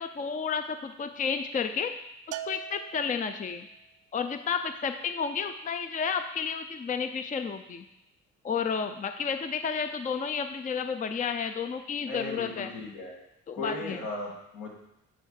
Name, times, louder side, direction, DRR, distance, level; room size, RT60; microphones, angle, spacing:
voice 1, 0.0-1.9 2.3-3.7 4.1-7.9 8.4-12.7 13.5-14.0, left 6 dB, 25° left, 8 dB, 0.5 m, -31 dB
Bell, 2.3-3.7, right 10 dB, 80° right, 0.5 m, -41 dB
voice 2, 12.1-13.2 13.5-14.7, left 2 dB, 80° left, -2 dB, 2.3 m, -36 dB
9.8 x 3.4 x 6.5 m, 0.86 s
cardioid pair, 90°, 30 cm